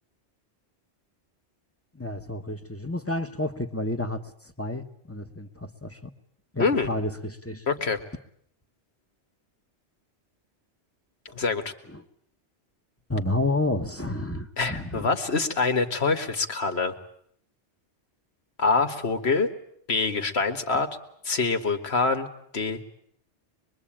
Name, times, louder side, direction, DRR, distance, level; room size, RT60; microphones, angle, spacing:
voice 1, 1.9-6.1 6.5-7.6 11.3-11.4 11.9-12.0 13.1-15.1, left 2 dB, 15° left, 8 dB, 1.3 m, -30 dB
voice 2, 7.7-8.0 11.3-11.6 14.6-16.9 18.6-19.5 19.9-20.9 21.2-22.3 22.5-22.8, left 4 dB, 70° left, 8 dB, 2.0 m, -25 dB
25.0 x 22.5 x 8.8 m, 0.68 s
omnidirectional pair, 1.1 m